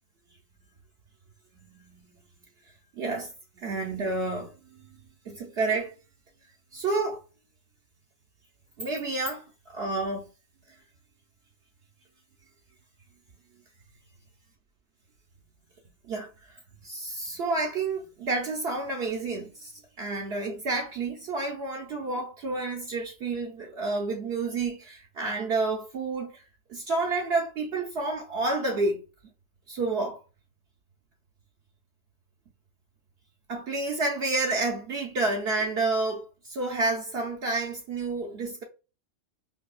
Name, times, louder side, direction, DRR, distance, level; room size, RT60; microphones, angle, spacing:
voice 1, 1.7-2.0 3.0-3.3 3.6-4.5 5.3-5.9 6.7-7.2 8.8-10.3 16.1-16.6 16.8-19.7 20.0-26.4 26.7-29.0 29.7-30.2 33.5-38.6, right 3 dB, 60° right, 0.9 m, -29 dB
5.3 x 2.3 x 2.4 m
omnidirectional pair, 1.3 m